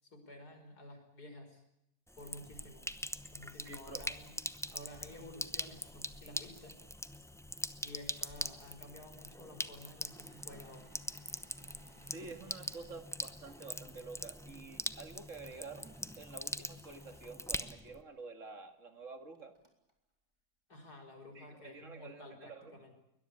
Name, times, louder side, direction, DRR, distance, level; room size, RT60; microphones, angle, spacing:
voice 1, 0.0-1.6 2.2-2.9 3.3-4.3 4.7-6.8 7.8-10.9 20.7-23.0, left 1 dB, 75° left, 6 dB, 5.9 m, -52 dB
Sink (filling or washing), 2.1-18.0, equal, 5° left, 0.4 m, -43 dB
voice 2, 3.6-4.1 12.1-19.5 21.3-22.8, right 4 dB, 50° right, 7 dB, 2.3 m, -49 dB
Engine / Mechanisms, 10.2-14.0 15.4-18.3 19.0-19.1 19.3-19.9, right 1 dB, 15° right, 4.0 m, -66 dB
22.0 x 21.0 x 8.6 m, 0.81 s
omnidirectional pair, 1.7 m